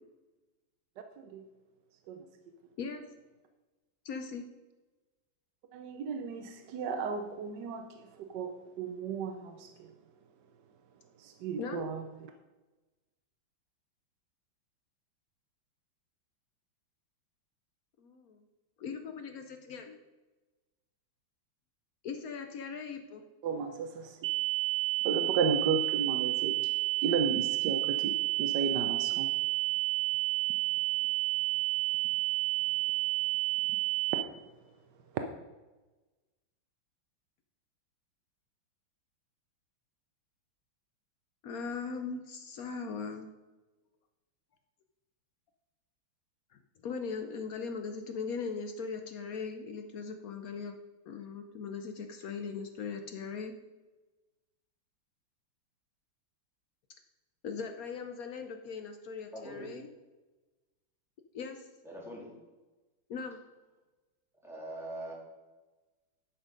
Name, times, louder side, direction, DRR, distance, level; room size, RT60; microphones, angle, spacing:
voice 1, 4.0-4.4 11.6-11.8 18.0-18.4 18.8-20.0 22.0-23.2 41.4-43.3 46.8-50.8 51.1-53.5 57.4-59.9 61.3-61.7 63.1-63.4, left 5 dB, 70° left, 5 dB, 0.8 m, -39 dB
voice 2, 5.7-9.9 11.2-12.1 23.4-24.2 25.0-26.7 27.0-29.3 34.1-34.2 35.1-35.2, right 5 dB, 70° right, 6 dB, 1.1 m, -34 dB
sound 1, 24.2-34.2, right 16 dB, 85° right, 1.5 m, -30 dB
voice 3, 59.3-59.7 61.8-62.3 64.4-65.1, right 1 dB, ahead, -5 dB, 2.7 m, -42 dB
10.5 x 6.1 x 5.1 m, 1.2 s
omnidirectional pair, 2.3 m